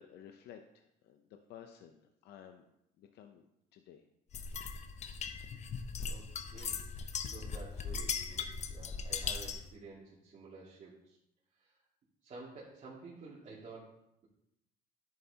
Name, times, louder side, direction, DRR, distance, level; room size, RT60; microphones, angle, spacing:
voice 1, 0.0-4.1, left 9 dB, 75° left, 6 dB, 0.7 m, -55 dB
sound 1, 4.3-9.7, left 6 dB, 40° left, 0.7 m, -39 dB
voice 2, 6.5-11.2 11.6-11.7 12.2-14.3, right 3 dB, 50° right, -8 dB, 2.4 m, -51 dB
10.0 x 8.5 x 2.9 m, 0.80 s
cardioid pair, 110°, 17 cm